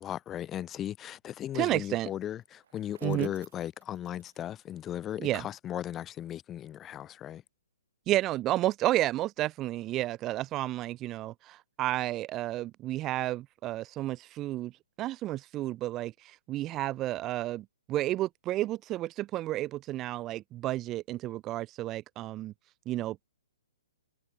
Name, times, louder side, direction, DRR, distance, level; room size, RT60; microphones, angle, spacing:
voice 1, 0.0-7.4, left 11 dB, 20° left, 0.8 m, -37 dB
voice 2, 1.5-2.1 3.0-3.3 5.2-5.4 8.1-14.7 15.0-22.5 22.9-23.3, right 15 dB, 25° right, 0.6 m, -31 dB
Bicycle, 2.3-5.6, right 9 dB, 60° right, 5.1 m, -59 dB
hypercardioid pair, 135°, 0 cm